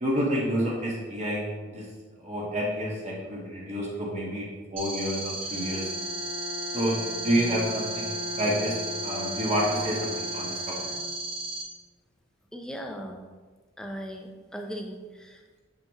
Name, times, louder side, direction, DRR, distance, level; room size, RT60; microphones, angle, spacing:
voice 1, 0.0-1.8 2.2-4.5 4.7-5.8 6.7-8.7 9.0-10.7, equal, 35° right, -4 dB, 1.3 m, -29 dB
sound 1, 4.8-11.6, right 2 dB, 80° right, 1.7 m, -35 dB
Bowed string instrument, 5.4-11.6, left 3 dB, 55° right, 0.8 m, -38 dB
voice 2, 12.5-13.2 13.8-15.6, equal, 5° left, 2 dB, 0.5 m, -38 dB
6.6 x 5.6 x 3.0 m, 1.3 s
head